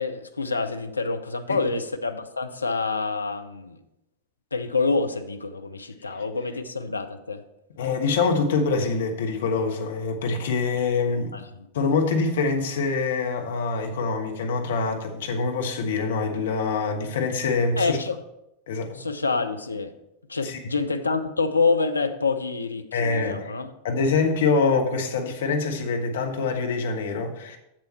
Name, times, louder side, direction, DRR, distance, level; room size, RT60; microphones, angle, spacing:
voice 1, 0.0-3.8 4.5-7.4 11.3-11.7 17.8-18.2 18.9-19.9 20.3-23.7, left 4 dB, 80° left, 0.6 m, -27 dB
voice 2, 7.8-11.3 11.7-18.0 18.7-19.1 20.4-20.6 22.9-23.5 23.8-27.6, left 4 dB, 60° left, 1.2 m, -25 dB
7.5 x 7.4 x 4.3 m
figure-of-eight pair, 90°, 0 cm